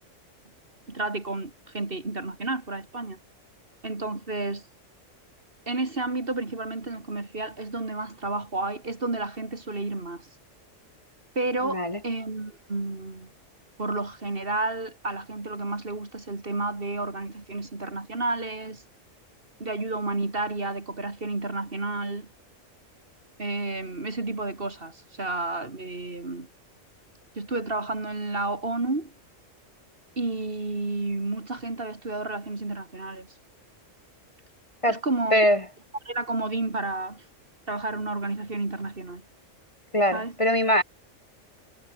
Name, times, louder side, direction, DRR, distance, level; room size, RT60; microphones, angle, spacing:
voice 1, 0.9-3.2 3.8-4.7 5.7-10.3 11.3-13.3 13.8-18.8 19.6-22.3 23.4-26.5 27.4-29.1 30.2-33.3 34.9-35.4 36.1-37.2 37.7-39.2 40.1-40.3, right 2 dB, 45° right, 3.0 m, -31 dB
voice 2, 11.6-12.0 34.8-35.0 35.3-35.6 39.9-40.8, equal, 25° left, 2.0 m, -22 dB
omnidirectional pair, 1.3 m